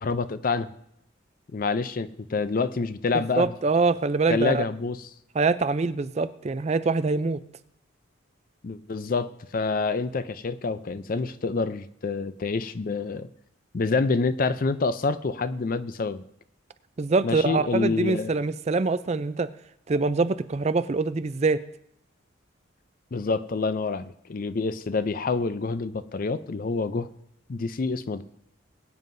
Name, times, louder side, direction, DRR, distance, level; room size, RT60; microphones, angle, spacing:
voice 1, 0.0-0.7 1.5-3.5 4.3-5.1 8.6-13.3 13.7-16.2 17.2-18.3 23.1-27.1 27.5-28.2, left 4 dB, 45° left, 13 dB, 0.4 m, -27 dB
voice 2, 3.1-4.6 5.3-7.4 17.0-19.5 19.9-21.6, right 3 dB, 35° right, 13 dB, 0.4 m, -24 dB
21.5 x 9.3 x 2.6 m, 0.74 s
head